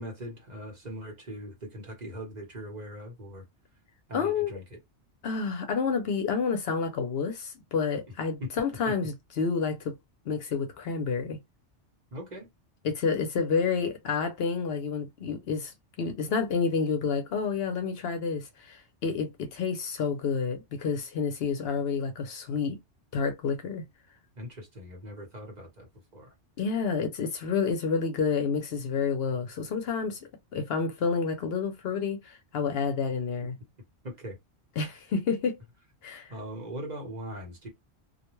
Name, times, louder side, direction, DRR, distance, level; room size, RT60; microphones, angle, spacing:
voice 1, 0.0-3.4 4.1-4.8 8.4-8.5 8.9-9.0 12.1-12.5 24.4-26.3 34.0-34.4 36.3-37.7, equal, 40° right, 1.0 m, -40 dB
voice 2, 4.1-4.5 5.2-9.9 10.3-11.4 12.8-22.8 23.1-23.8 26.6-30.2 30.5-33.6 34.8-35.6 36.0-36.3, left 5 dB, 65° left, 0.8 m, -29 dB
2.3 x 2.1 x 3.0 m
omnidirectional pair, 1.2 m